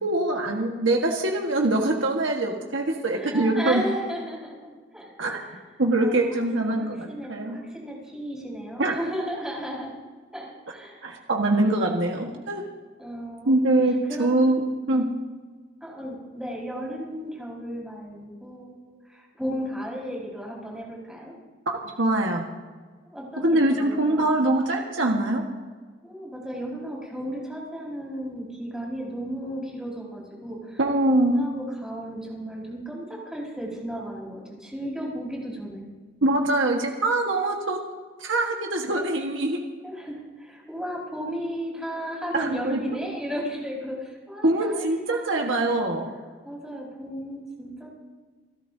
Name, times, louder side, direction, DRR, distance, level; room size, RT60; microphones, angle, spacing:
voice 1, 0.0-3.9 5.2-5.4 5.8-7.6 8.8-9.0 11.0-12.6 13.4-14.6 14.9-15.1 21.7-22.4 23.4-25.4 30.8-31.4 36.2-37.8 38.2-39.6 42.3-42.8 44.4-46.1, right 2 dB, 85° right, 1 dB, 1.5 m, -23 dB
voice 2, 3.1-5.6 6.0-6.4 6.7-9.9 10.3-11.1 12.3-12.4 13.0-13.6 14.0-14.7 15.8-21.3 23.0-24.4 26.0-35.8 39.8-45.6 46.4-47.9, equal, 5° right, -4 dB, 5.0 m, -35 dB
30.0 x 13.5 x 2.8 m, 1.5 s
head